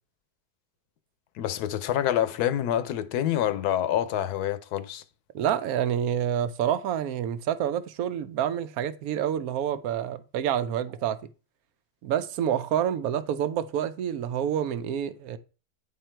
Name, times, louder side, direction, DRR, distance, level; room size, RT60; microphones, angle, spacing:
voice 1, 1.3-5.0, left 11 dB, 75° left, 1.2 m, -27 dB
voice 2, 5.3-11.2 12.0-15.4, right 9 dB, 70° right, 1.1 m, -28 dB
9.8 x 3.7 x 4.4 m
omnidirectional pair, 1.7 m